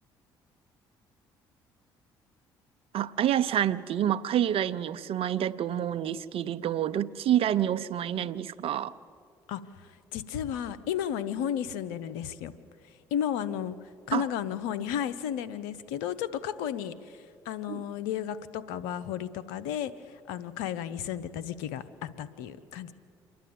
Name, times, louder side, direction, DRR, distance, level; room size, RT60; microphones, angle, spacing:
voice 1, 2.9-8.9 14.1-14.3 17.7-17.8, right 10 dB, 60° right, 14 dB, 0.7 m, -28 dB
voice 2, 9.5-12.5 13.1-22.9, left 9 dB, 85° left, 15 dB, 0.8 m, -33 dB
27.0 x 11.5 x 8.6 m, 2.2 s
hypercardioid pair, 55°, 11 cm